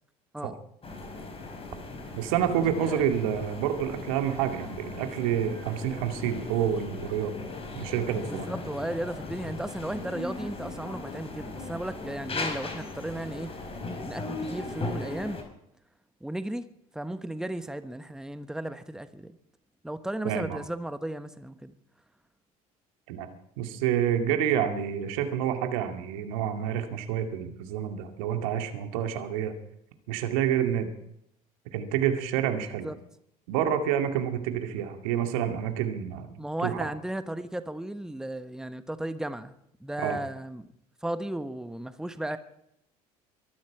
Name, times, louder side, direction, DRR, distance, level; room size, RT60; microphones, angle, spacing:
sound 1, 0.8-15.4, left 3 dB, 30° left, 5.0 m, -38 dB
voice 1, 2.1-7.3 7.7-8.5 20.2-20.6 23.1-23.3 23.6-29.5 30.1-30.9 31.7-32.9 33.5-36.9 40.0-40.2, right 9 dB, 70° right, 6 dB, 2.3 m, -28 dB
voice 2, 2.7-3.0 8.2-13.5 14.0-15.4 16.2-16.7 16.9-19.4 19.8-21.7 24.3-24.4 32.8-32.9 36.4-39.5 39.8-40.7 41.0-42.4, right 1 dB, 5° right, 11 dB, 1.2 m, -35 dB
23.5 x 12.0 x 4.8 m, 0.77 s
hypercardioid pair, 65°, 19 cm